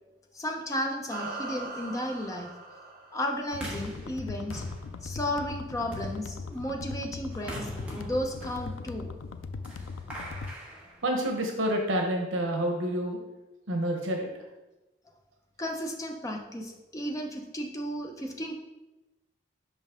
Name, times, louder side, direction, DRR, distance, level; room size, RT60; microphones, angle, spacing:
voice 1, 0.3-2.5 3.1-4.6 5.0-9.1 15.6-18.6, equal, 15° left, 2 dB, 0.6 m, -34 dB
sound 1, 1.1-3.8, right 3 dB, 50° right, 0.8 m, -40 dB
sound 2, 3.5-10.5, left 4 dB, 90° left, 0.4 m, -39 dB
sound 3, 3.5-11.6, equal, 5° right, 1.1 m, -44 dB
voice 2, 11.0-13.2 13.7-14.5, right 1 dB, 85° right, 2 dB, 0.9 m, -28 dB
5.5 x 5.4 x 3.6 m, 1.0 s
head